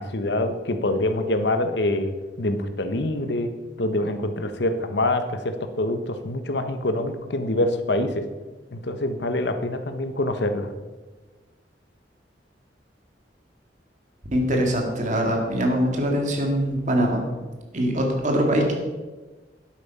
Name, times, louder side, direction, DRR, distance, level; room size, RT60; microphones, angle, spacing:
voice 1, 0.0-3.5 3.8-8.2 8.7-10.7, left 1 dB, 75° left, 8 dB, 1.1 m, -25 dB
voice 2, 14.3-17.2 17.7-18.7, equal, 45° right, 2 dB, 2.2 m, -23 dB
11.0 x 8.4 x 5.6 m, 1.2 s
head